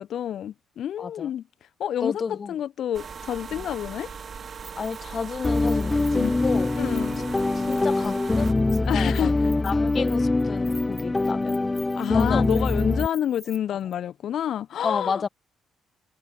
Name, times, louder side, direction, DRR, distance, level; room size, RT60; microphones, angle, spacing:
voice 1, 0.0-1.4 1.8-4.1 6.2-6.3 6.8-7.2 8.9-9.3 11.9-15.3, left 10 dB, 55° left, 1.1 m, -28 dB
voice 2, 1.0-1.3 2.0-2.6 3.5-3.6 4.8-6.7 7.3-9.3 9.6-11.6 12.1-12.5 14.8-15.3, left 5 dB, 40° left, 1.8 m, -31 dB
sound 1, 2.9-8.5, right 6 dB, 40° right, 2.9 m, -39 dB
Keys jangling, 4.6-5.2 5.4-7.4 7.7-8.2 8.5-13.6 13.9-14.0, right 1 dB, 10° right, 2.1 m, -47 dB
sound 2, 5.4-13.1, left 2 dB, 20° left, 0.4 m, -23 dB
figure-of-eight pair, 40°, 0 cm